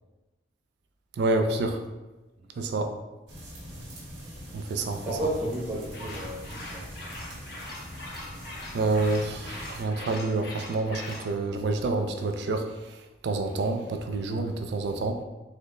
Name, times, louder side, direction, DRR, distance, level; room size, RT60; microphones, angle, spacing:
voice 1, 1.2-1.8 2.6-2.9 4.5-5.1 8.7-12.7 13.2-15.2, right 2 dB, 65° right, 6 dB, 0.3 m, -28 dB
sound 1, 3.3-9.8, equal, 80° right, 1.0 m, -43 dB
voice 2, 5.0-6.9, right 1 dB, 30° right, -9 dB, 1.0 m, -33 dB
sound 2, 5.9-11.3, left 2 dB, 55° left, 0.8 m, -41 dB
3.8 x 2.1 x 3.2 m, 1.1 s
head